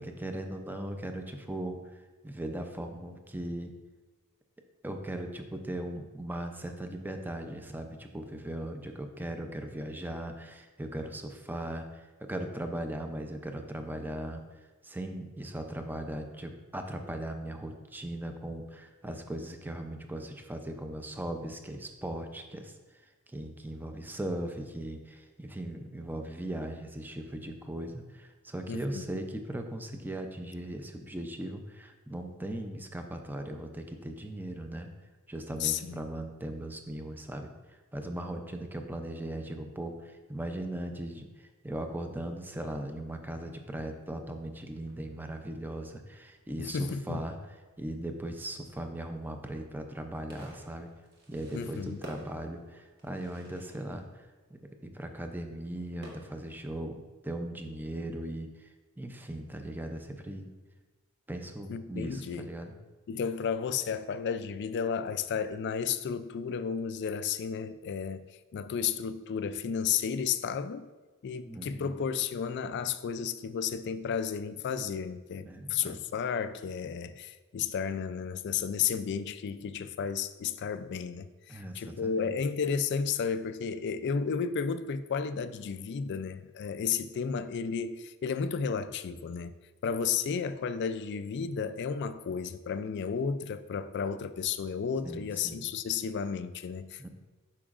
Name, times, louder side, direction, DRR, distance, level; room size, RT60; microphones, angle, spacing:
voice 1, 0.0-3.7 4.8-23.0 23.3-34.9 35.3-37.5 37.9-50.9 51.3-58.7 59.0-60.5 61.3-62.8 71.5-71.9 75.4-76.0 81.5-82.3 95.0-95.7 97.0-97.1, right 1 dB, 10° right, 0.5 m, -38 dB
voice 2, 28.7-29.2 35.6-36.0 46.6-47.2 51.5-52.0 61.7-62.5 63.1-70.9 71.2-89.5 89.8-97.1, left 6 dB, 50° left, 0.3 m, -33 dB
Fireworks, 42.5-56.7, equal, 45° right, 1.4 m, -56 dB
8.5 x 6.1 x 2.5 m
head